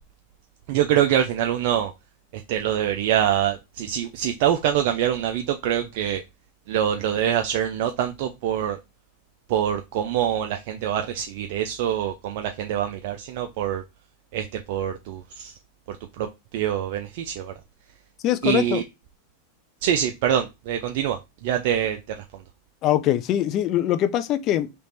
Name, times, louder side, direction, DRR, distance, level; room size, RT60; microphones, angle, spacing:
voice 1, 0.7-1.9 2.3-6.2 6.7-8.8 9.5-13.8 14.3-15.5 15.9-16.3 16.5-17.5 18.4-18.8 19.8-22.4, right 10 dB, 60° right, 0.5 m, -25 dB
voice 2, 18.2-18.8 22.8-24.7, left 12 dB, 45° left, 0.5 m, -22 dB
3.4 x 3.0 x 4.1 m
hypercardioid pair, 110°, 0 cm